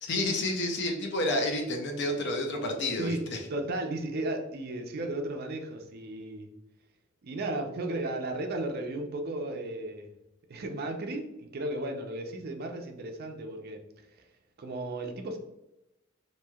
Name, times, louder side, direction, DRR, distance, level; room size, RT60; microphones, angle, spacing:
voice 1, 0.0-3.4, left 1 dB, 55° left, 4 dB, 0.5 m, -30 dB
voice 2, 3.0-6.5 7.2-10.1 10.5-13.8 14.6-15.4, right 2 dB, 50° right, 4 dB, 0.4 m, -34 dB
3.0 x 2.6 x 2.3 m, 0.92 s
head